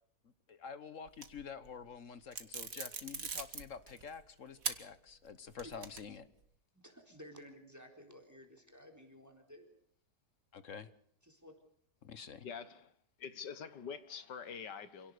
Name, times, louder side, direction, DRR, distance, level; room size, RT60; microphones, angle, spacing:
voice 1, 0.5-6.3 10.5-10.9 12.0-12.5, left 6 dB, 50° left, 1.4 m, -48 dB
sound 1, 1.1-1.7 2.3-4.1 4.6-4.8 5.2-6.2, right 6 dB, 55° right, 2.0 m, -41 dB
voice 2, 6.7-9.8 11.2-11.6, equal, 10° right, 3.8 m, -55 dB
voice 3, 12.4-12.9 13.2-15.1, left 6 dB, 80° left, 2.0 m, -45 dB
27.0 x 17.5 x 6.7 m
omnidirectional pair, 1.8 m